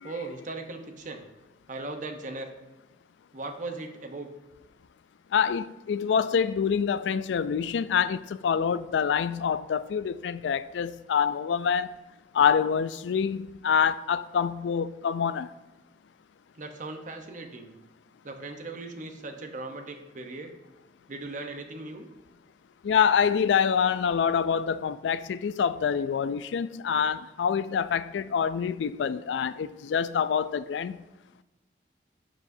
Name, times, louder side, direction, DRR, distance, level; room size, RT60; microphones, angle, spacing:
voice 1, 0.0-1.3 1.7-2.5 3.3-4.3 16.5-17.7 18.2-20.5 21.1-22.1, right 2 dB, 45° right, 0.8 m, -38 dB
voice 2, 5.3-11.9 12.3-15.5 22.8-31.0, left 7 dB, 90° left, 0.3 m, -26 dB
12.0 x 4.9 x 2.6 m
head